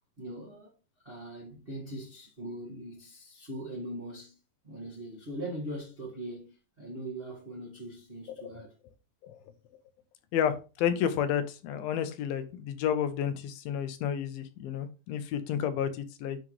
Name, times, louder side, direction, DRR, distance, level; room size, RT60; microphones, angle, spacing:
voice 1, 0.2-0.7 1.0-4.4 4.6-8.7, right 1 dB, 35° right, 0.9 m, -41 dB
voice 2, 10.3-16.4, left 9 dB, 90° left, 2.6 m, -31 dB
9.8 x 3.8 x 3.2 m
omnidirectional pair, 4.1 m